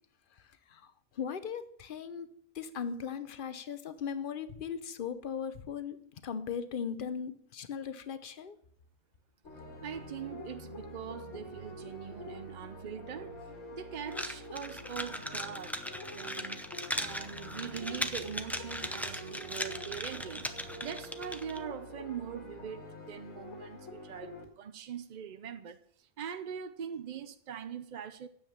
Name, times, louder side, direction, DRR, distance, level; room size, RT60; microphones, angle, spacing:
voice 1, 0.7-8.6, left 7 dB, 45° left, 0.9 m, -38 dB
sound 1, 9.4-24.4, left 1 dB, 65° left, 2.2 m, -46 dB
voice 2, 9.8-13.4 13.7-15.8 16.1-16.7 17.0-20.5 20.8-28.3, right 8 dB, 65° right, 0.4 m, -42 dB
sound 2, 14.1-21.6, equal, ahead, 0.3 m, -38 dB
9.6 x 7.7 x 7.3 m
omnidirectional pair, 1.4 m